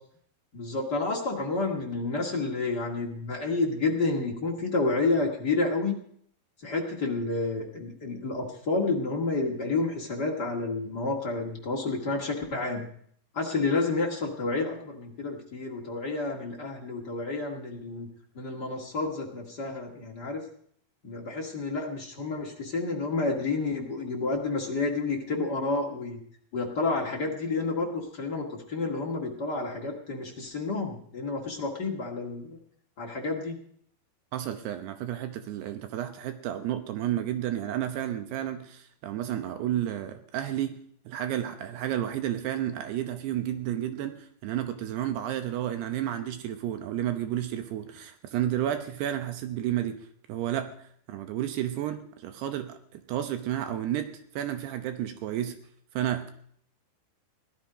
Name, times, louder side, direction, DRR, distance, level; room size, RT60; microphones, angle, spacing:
voice 1, 0.5-6.0 6.6-12.9 13.3-18.1 18.3-20.4 21.0-26.2 26.5-32.6 33.0-33.5, left 3 dB, 50° left, -1 dB, 1.2 m, -30 dB
voice 2, 34.3-40.8 41.1-55.6 55.9-56.3, right 11 dB, 75° right, 8 dB, 2.7 m, -31 dB
17.5 x 12.5 x 5.1 m, 0.63 s
omnidirectional pair, 5.4 m